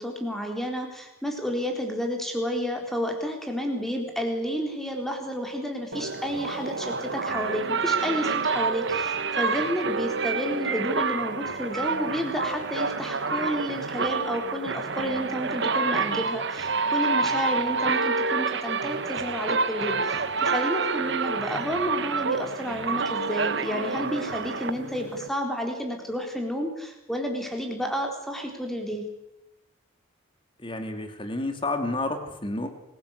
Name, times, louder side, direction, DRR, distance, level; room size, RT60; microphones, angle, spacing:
voice 1, 0.0-29.1, equal, ahead, 2 dB, 3.9 m, -31 dB
sound 1, 5.9-25.3, right 4 dB, 55° right, 1.3 m, -28 dB
voice 2, 30.6-32.7, left 2 dB, 25° left, 7 dB, 2.8 m, -30 dB
25.5 x 17.0 x 8.2 m, 0.88 s
head